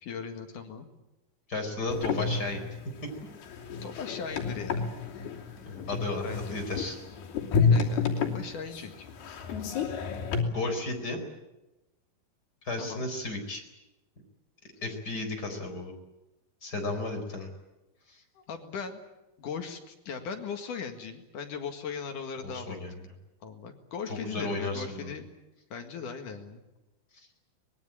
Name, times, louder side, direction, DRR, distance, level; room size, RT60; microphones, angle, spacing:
voice 1, 0.0-0.9 3.8-5.0 6.2-6.6 7.5-9.1 12.8-13.0 18.3-19.0 19.4-22.8 23.4-25.2 25.7-26.6, left 6 dB, 60° left, 5 dB, 3.2 m, -38 dB
voice 2, 1.5-2.6 5.6-7.0 10.5-11.2 12.6-13.6 14.8-15.9 16.6-17.5 18.1-18.2 22.4-23.0 24.1-25.1, left 2 dB, 25° left, 3 dB, 4.6 m, -34 dB
sound 1, 1.9-10.4, left 5 dB, 85° left, 4.9 m, -30 dB
24.0 x 21.0 x 8.9 m, 0.99 s
omnidirectional pair, 4.4 m